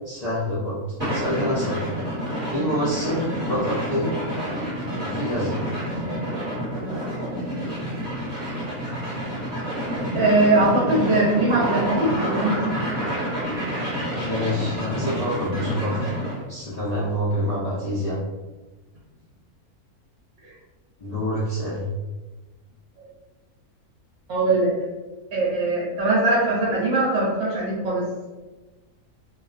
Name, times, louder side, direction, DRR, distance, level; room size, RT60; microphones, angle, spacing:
voice 1, 0.0-0.8 1.1-1.8 2.5-4.3 5.0-5.6 14.2-16.1 16.5-18.2 21.0-21.9, equal, 80° left, -9 dB, 0.3 m, -26 dB
sound 1, 1.0-16.4, equal, 20° right, 0.9 m, -28 dB
voice 2, 10.1-12.9 24.3-24.7 25.3-28.1, right 2 dB, 60° right, -6 dB, 0.7 m, -21 dB
2.3 x 2.3 x 2.4 m, 1.2 s
omnidirectional pair, 1.5 m